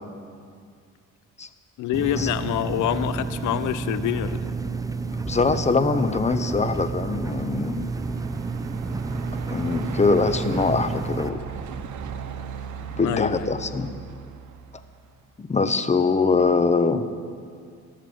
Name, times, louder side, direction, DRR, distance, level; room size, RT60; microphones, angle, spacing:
voice 1, 1.8-4.4 13.0-13.3, left 11 dB, 80° left, 14 dB, 0.7 m, -26 dB
sound 1, 1.9-11.3, right 4 dB, 10° right, 0.5 m, -30 dB
voice 2, 5.3-8.0 9.5-11.4 13.0-13.9 15.4-17.0, left 4 dB, 25° left, 11 dB, 0.8 m, -23 dB
Truck, 6.2-15.3, right 7 dB, 75° right, 0.9 m, -39 dB
17.0 x 6.7 x 7.8 m, 2.2 s
cardioid pair, 90°, 30 cm